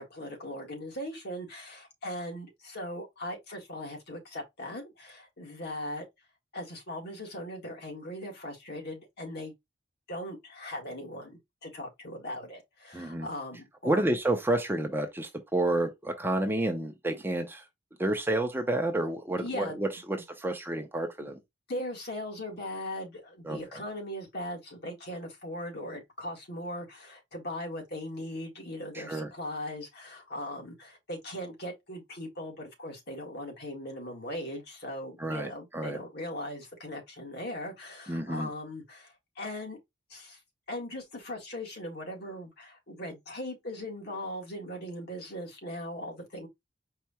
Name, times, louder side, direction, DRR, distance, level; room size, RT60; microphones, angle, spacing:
voice 1, 0.0-6.1 6.5-9.5 10.1-14.0 19.4-19.8 21.2-21.3 21.7-39.8 40.1-40.4 40.7-46.5, left 1 dB, 60° left, 1.9 m, -39 dB
voice 2, 12.9-13.3 13.8-17.6 18.0-21.4 23.4-23.8 28.9-29.3 35.2-36.0 38.1-38.5, right 1 dB, 10° right, 0.7 m, -30 dB
4.7 x 2.4 x 4.2 m
head